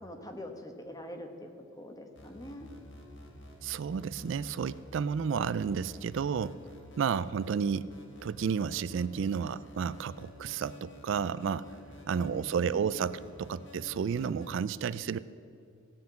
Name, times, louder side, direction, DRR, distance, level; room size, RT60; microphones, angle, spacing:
voice 1, 0.0-2.7 12.2-12.9, left 1 dB, 20° left, 4 dB, 1.1 m, -44 dB
sound 1, 2.1-14.5, left 1 dB, 60° left, 1.8 m, -50 dB
voice 2, 3.6-6.6 7.0-7.9 8.2-11.7 12.1-15.2, right 6 dB, 65° right, 17 dB, 0.3 m, -31 dB
16.5 x 5.8 x 8.6 m, 2.5 s
head